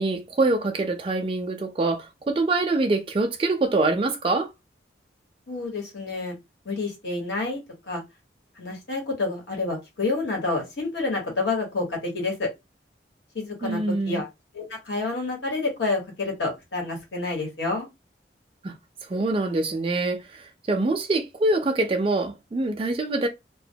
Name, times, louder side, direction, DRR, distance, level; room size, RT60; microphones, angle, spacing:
voice 1, 0.0-4.5 13.6-14.2 18.6-18.7 19.1-23.3, right 2 dB, 30° right, 0.3 m, -25 dB
voice 2, 5.5-6.3 6.6-7.6 7.9-8.0 8.6-12.5 13.3-13.8 14.1-14.3 14.5-17.9, left 3 dB, 80° left, 1.1 m, -28 dB
2.1 x 2.1 x 2.7 m
head